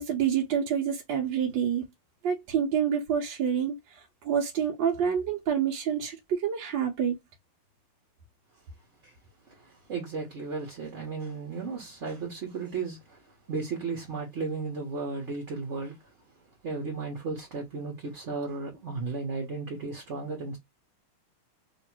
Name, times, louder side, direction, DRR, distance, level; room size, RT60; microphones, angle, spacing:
voice 1, 0.0-1.8 2.2-7.2, right 8 dB, 70° right, 1.4 m, -28 dB
voice 2, 9.5-13.2 13.5-16.0 16.6-20.6, right 4 dB, 40° right, 1.2 m, -34 dB
3.0 x 3.0 x 4.4 m
omnidirectional pair, 2.3 m